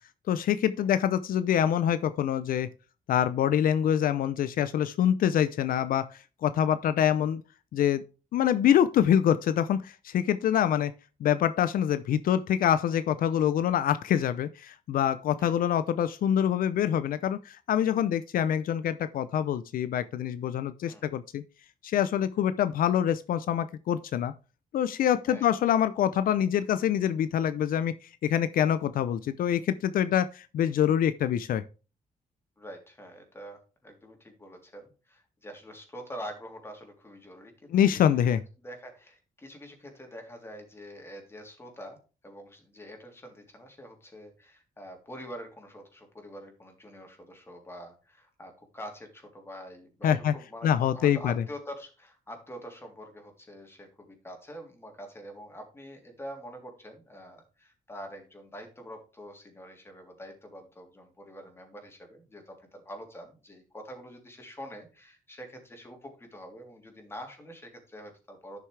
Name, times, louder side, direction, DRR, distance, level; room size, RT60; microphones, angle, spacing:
voice 1, 0.3-2.7 3.1-7.4 7.7-8.0 8.3-10.9 11.2-21.4 21.8-24.3 24.7-31.6 37.7-38.4 50.0-50.3 50.6-51.4, left 10 dB, 80° left, 0.6 m, -25 dB
voice 2, 32.6-37.7 38.0-38.2 38.6-68.6, equal, 15° left, 3.2 m, -45 dB
11.5 x 6.8 x 3.3 m
cardioid pair, 125°, 15 cm